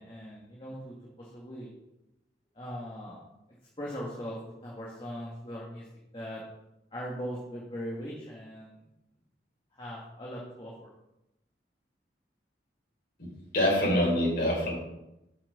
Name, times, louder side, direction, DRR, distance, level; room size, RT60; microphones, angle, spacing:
voice 1, 0.0-1.7 2.5-3.2 3.8-5.8 6.1-6.4 6.9-8.7 9.7-10.9, equal, 30° left, -5 dB, 1.8 m, -40 dB
voice 2, 13.5-14.7, left 1 dB, 55° left, -3 dB, 3.6 m, -25 dB
7.4 x 6.4 x 6.7 m, 0.90 s
head